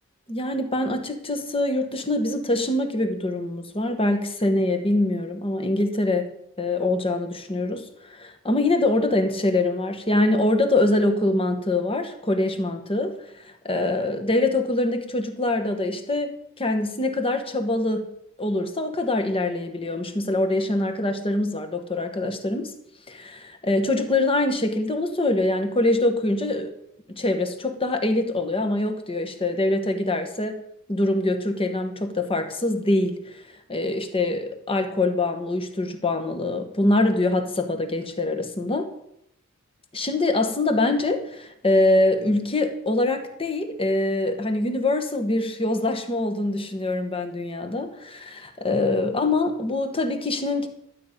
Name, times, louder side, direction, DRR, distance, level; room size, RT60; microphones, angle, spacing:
voice 1, 0.3-6.3 6.6-18.1 18.4-22.7 23.1-26.7 27.1-30.6 30.9-33.4 33.7-38.9 39.9-50.7, left 2 dB, 25° left, 6 dB, 1.2 m, -24 dB
12.5 x 5.2 x 8.5 m, 0.77 s
head